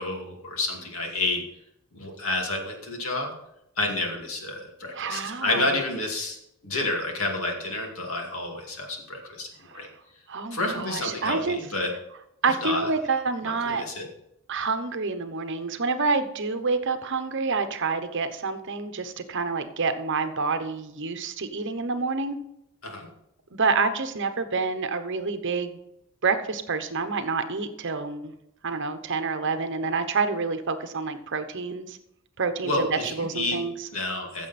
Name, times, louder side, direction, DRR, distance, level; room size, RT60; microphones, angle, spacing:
voice 1, 0.0-1.4 1.9-3.3 3.8-6.4 6.6-9.5 9.7-9.9 10.5-11.9 12.5-12.9 13.4-14.1 22.8-23.1 32.6-33.6 33.9-34.5, left 2 dB, 70° left, 1 dB, 2.4 m, -29 dB
voice 2, 5.0-5.8 10.3-11.6 12.4-13.8 14.5-22.4 23.5-25.8 26.2-28.3 28.6-32.0 32.4-33.7, right 4 dB, 60° right, 9 dB, 1.0 m, -28 dB
14.5 x 7.1 x 4.2 m, 0.82 s
head